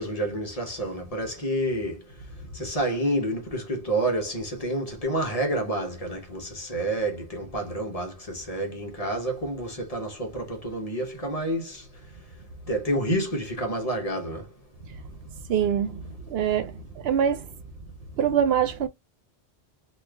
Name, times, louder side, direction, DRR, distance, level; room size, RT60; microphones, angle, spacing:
voice 1, 0.0-2.0 2.5-11.9 12.7-14.5, right 1 dB, 40° left, 0.9 m, -29 dB
voice 2, 15.5-17.5 18.2-18.9, right 8 dB, 75° right, 0.8 m, -24 dB
2.9 x 2.4 x 3.3 m
omnidirectional pair, 1.1 m